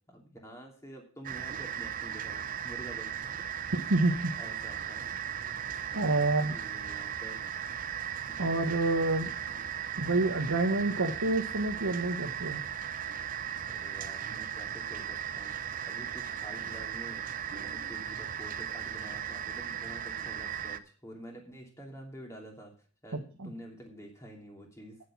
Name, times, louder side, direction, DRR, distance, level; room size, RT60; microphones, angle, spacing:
voice 1, 0.1-3.4 4.0-5.3 6.2-7.4 8.3-8.5 13.6-17.2 17.6-22.7 23.0-25.0, equal, 15° left, 0 dB, 2.9 m, -48 dB
sound 1, 1.2-20.8, right 8 dB, 40° right, 0.6 m, -37 dB
voice 2, 3.7-4.3 5.9-6.6 8.4-9.3 10.0-12.6 23.4-23.5, right 2 dB, 85° right, 2 dB, 1.3 m, -28 dB
9.4 x 7.7 x 6.0 m, 0.38 s
head